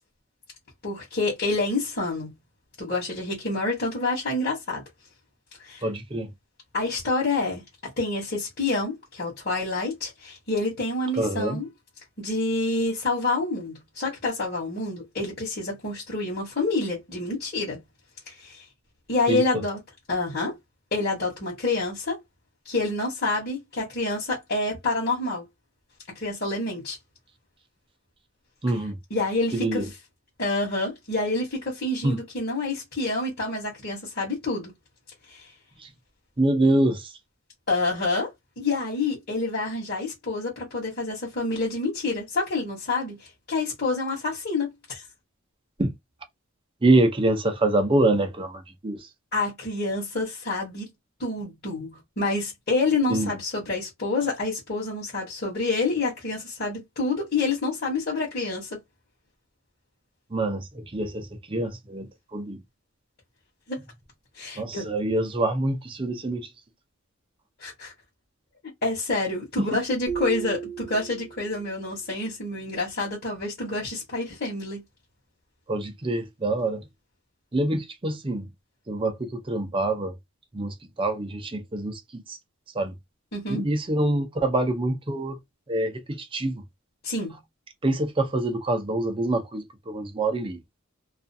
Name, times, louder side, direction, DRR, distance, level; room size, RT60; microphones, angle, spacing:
voice 1, 0.8-2.3 2.8-4.8 5.6-5.8 6.7-7.6 8.0-11.7 12.2-17.8 18.3-18.6 19.1-19.8 20.1-20.5 20.9-22.2 22.6-25.4 26.1-27.0 29.1-29.8 30.4-34.7 35.3-35.5 37.7-45.0 49.3-50.9 51.2-58.7 63.7-63.8 64.4-64.9 67.6-67.9 68.8-74.8 83.3-83.6 87.0-87.4, left 3 dB, 45° left, 1.1 m, -28 dB
voice 2, 5.8-6.3 11.2-11.6 19.3-19.6 28.6-29.0 29.5-29.9 32.0-32.2 35.8-35.9 36.4-37.1 45.8-45.9 46.8-49.1 53.1-53.3 60.3-62.6 64.6-66.5 69.6-69.8 75.7-76.9 77.5-78.5 78.9-80.2 80.5-82.4 82.7-82.9 83.5-85.4 85.7-86.6 87.8-90.6, right 2 dB, 25° right, 0.5 m, -25 dB
sound 1, 70.1-71.8, right 7 dB, 45° right, 1.0 m, -34 dB
2.4 x 2.4 x 2.6 m
head